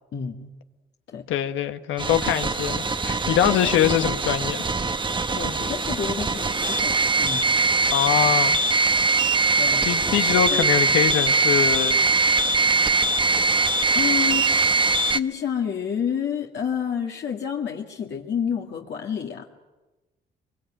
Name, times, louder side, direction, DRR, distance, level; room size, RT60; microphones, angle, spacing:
voice 1, 0.1-0.5 1.1-1.2 3.6-3.8 5.4-7.5 9.6-10.6 13.9-19.5, left 7 dB, 60° left, 2.1 m, -30 dB
voice 2, 1.3-4.7 7.9-8.6 9.5-12.0, left 10 dB, 85° left, 1.4 m, -23 dB
sound 1, 2.0-15.2, right 3 dB, 25° right, 1.0 m, -22 dB
23.5 x 23.5 x 8.9 m
cardioid pair, 90°, 20 cm